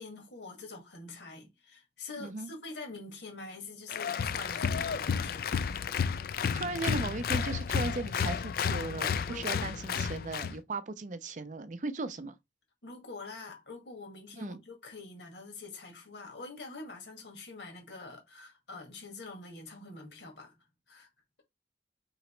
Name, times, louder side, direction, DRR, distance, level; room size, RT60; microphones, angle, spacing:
voice 1, 0.0-5.5 9.3-9.7 12.8-20.6 20.9-21.1, left 3 dB, 70° left, 1.8 m, -45 dB
voice 2, 2.2-2.5 6.5-12.3 14.4-14.6, right 3 dB, 40° right, 0.5 m, -37 dB
Applause, 3.9-10.6, left 6 dB, 55° left, 0.3 m, -32 dB
3.9 x 3.0 x 4.4 m
head